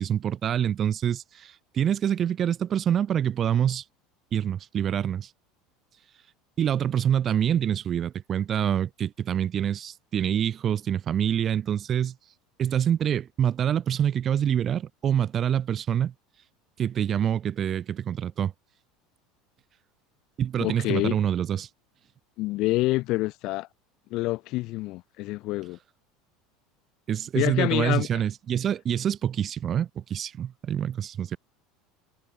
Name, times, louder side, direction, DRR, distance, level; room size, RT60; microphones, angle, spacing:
voice 1, 0.0-3.8 4.3-5.3 6.6-12.1 12.6-16.1 16.8-18.5 20.4-21.7 27.1-31.4, right 9 dB, 40° right, 5.9 m, -26 dB
voice 2, 20.6-21.2 22.4-23.7 24.1-25.8 27.3-28.1, left 20 dB, 60° left, 4.2 m, -27 dB
supercardioid pair, 105°, 0 cm